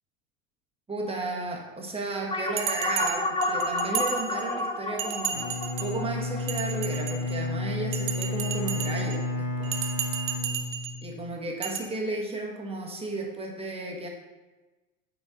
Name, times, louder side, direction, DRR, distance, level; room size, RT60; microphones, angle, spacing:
voice 1, 0.9-5.5 5.8-9.8 11.0-14.1, right 2 dB, 15° right, 0 dB, 1.5 m, -33 dB
sound 1, 2.3-7.1, left 2 dB, 10° left, 0.7 m, -30 dB
Bell, 2.6-4.6 5.0-6.0 6.4-7.4 7.9-9.2 9.6-11.0 11.6-11.8, right 8 dB, 70° right, 1.0 m, -33 dB
Bowed string instrument, 5.3-11.4, left 2 dB, 50° left, 1.1 m, -31 dB
9.0 x 4.5 x 3.9 m, 1.2 s
hypercardioid pair, 80°, 41 cm